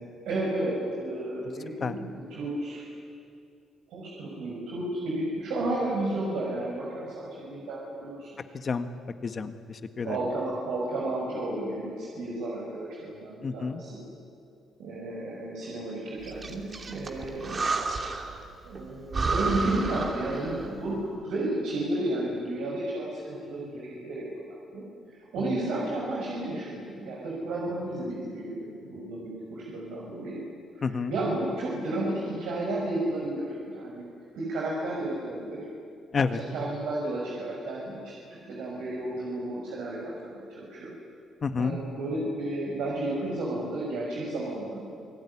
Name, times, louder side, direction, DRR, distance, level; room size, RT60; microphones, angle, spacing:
voice 1, 0.2-2.8 3.9-8.4 10.0-14.0 14.8-17.7 18.6-24.8 25.3-30.4 30.8-34.0 34.3-35.6 36.3-40.9 41.6-44.9, right 1 dB, 85° right, -4 dB, 6.2 m, -32 dB
voice 2, 8.5-8.9 9.2-10.2 13.4-13.8 25.4-25.5 30.8-31.1 36.1-36.4 41.4-41.8, left 5 dB, 45° left, 9 dB, 1.6 m, -29 dB
Breathing, 16.2-18.4 18.7-18.8 19.1-20.8, right 3 dB, 40° right, 3.0 m, -31 dB
29.0 x 18.0 x 10.0 m, 2.4 s
cardioid pair, 90°, 0 cm